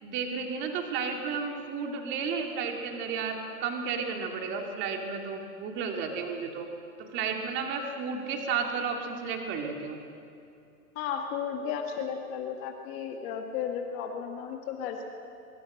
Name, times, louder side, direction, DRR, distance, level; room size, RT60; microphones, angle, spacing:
voice 1, 0.0-6.7 7.0-10.0, right 5 dB, 25° right, 3 dB, 2.5 m, -32 dB
voice 2, 11.0-15.1, left 7 dB, 25° left, 4 dB, 1.9 m, -34 dB
23.0 x 23.0 x 7.8 m, 2.6 s
hypercardioid pair, 155°, 46 cm